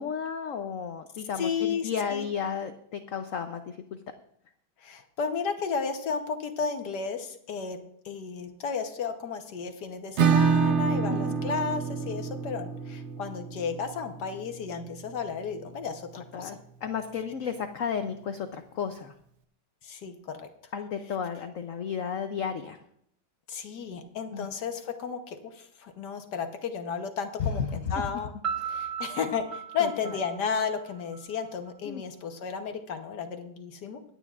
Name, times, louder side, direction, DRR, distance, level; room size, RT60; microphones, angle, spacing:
voice 1, 0.0-3.8 11.1-11.4 16.3-19.1 20.7-22.8 24.3-24.5 27.4-27.8 28.6-28.9 29.8-29.9 31.9-32.0, left 7 dB, 80° left, 8 dB, 0.7 m, -33 dB
voice 2, 1.4-2.3 4.8-7.8 8.0-16.5 19.8-20.4 23.5-28.3 28.7-34.0, left 6 dB, 60° left, 7 dB, 1.5 m, -33 dB
Acoustic guitar / Strum, 10.2-15.6, right 6 dB, 90° right, 0.6 m, -28 dB
Piano, 28.4-31.2, right 7 dB, 25° right, 0.8 m, -36 dB
24.5 x 9.1 x 2.4 m, 0.70 s
omnidirectional pair, 2.2 m